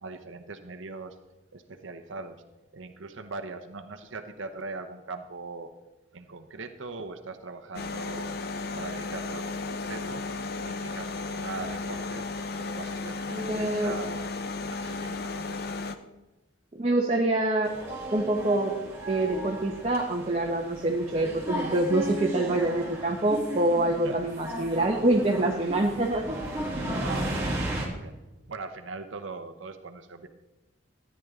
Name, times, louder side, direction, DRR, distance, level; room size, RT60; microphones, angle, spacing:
voice 1, 0.0-1.1 1.5-2.4 2.7-5.7 6.1-8.3 8.7-10.2 10.5-12.2 12.6-14.3 14.7-15.7 24.0-24.1 24.7-24.8 27.0-27.6 27.9-28.1 28.5-30.3, right 3 dB, 70° right, 6 dB, 0.8 m, -40 dB
sound 1, 7.7-15.9, left 3 dB, 50° left, 0.7 m, -34 dB
voice 2, 13.3-13.9 16.8-17.7 18.1-18.7 19.1-26.4, right 2 dB, 30° right, 0 dB, 0.9 m, -26 dB
sound 2, 17.6-27.9, right 1 dB, 10° right, 2.1 m, -35 dB
13.5 x 9.5 x 3.7 m, 1.1 s
head